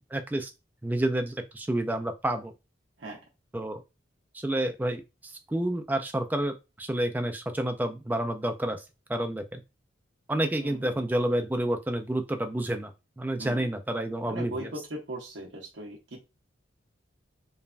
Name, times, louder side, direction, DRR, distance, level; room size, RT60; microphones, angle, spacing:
voice 1, 0.1-0.5 0.8-2.5 3.5-3.8 4.3-8.8 9.1-9.6 10.3-14.7, right 1 dB, 10° right, 6 dB, 0.3 m, -29 dB
voice 2, 10.6-10.9 13.4-13.7 14.3-16.2, right 1 dB, 65° right, -1 dB, 0.7 m, -39 dB
3.1 x 2.1 x 2.4 m, 0.26 s
head